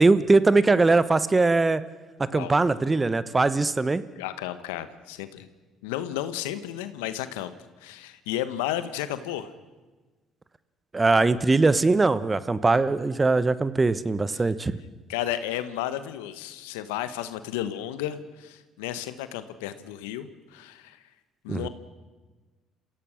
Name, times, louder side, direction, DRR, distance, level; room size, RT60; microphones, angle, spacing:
voice 1, 0.0-1.8 2.3-4.0 10.9-14.7 21.5-21.7, right 3 dB, 25° right, 15 dB, 1.1 m, -21 dB
voice 2, 4.2-5.5 5.8-7.5 7.8-9.5 14.3-14.4 15.1-21.0 21.4-21.7, left 12 dB, 85° left, 12 dB, 1.2 m, -33 dB
28.0 x 16.5 x 6.4 m, 1.3 s
hypercardioid pair, 60°, 0 cm